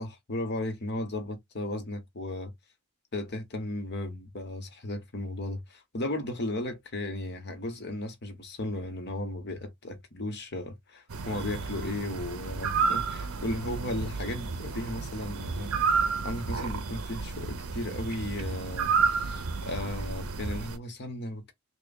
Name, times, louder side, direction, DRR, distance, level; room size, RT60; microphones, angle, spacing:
voice 1, 0.0-2.5 3.1-21.5, left 1 dB, 50° left, 1.0 m, -35 dB
sound 1, 11.1-20.8, right 5 dB, 70° right, 0.7 m, -31 dB
3.4 x 2.4 x 3.9 m
head